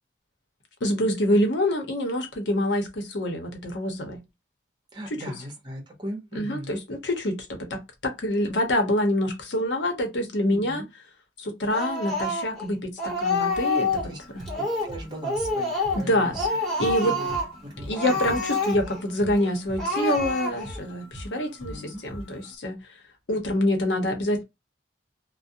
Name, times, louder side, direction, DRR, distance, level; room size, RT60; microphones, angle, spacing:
voice 1, 0.8-4.2 5.1-5.2 6.3-10.8 11.4-13.9 14.3-14.4 16.0-16.4 16.8-17.1 17.9-22.8 23.3-24.4, left 1 dB, 75° left, 0.8 m, -26 dB
voice 2, 4.9-6.8 10.4-10.9 14.0-14.2 14.5-16.5 17.0-17.4 17.6-18.4 21.6-22.0, equal, 25° right, 0.9 m, -38 dB
Speech, 11.7-12.7 13.0-14.1 14.5-15.0 15.2-16.1 16.3-17.5 17.9-19.0 19.4-19.5 19.8-20.8, left 2 dB, ahead, 1.2 m, -27 dB
sound 1, 13.5-22.5, equal, 35° left, 1.1 m, -42 dB
2.4 x 2.1 x 2.6 m
head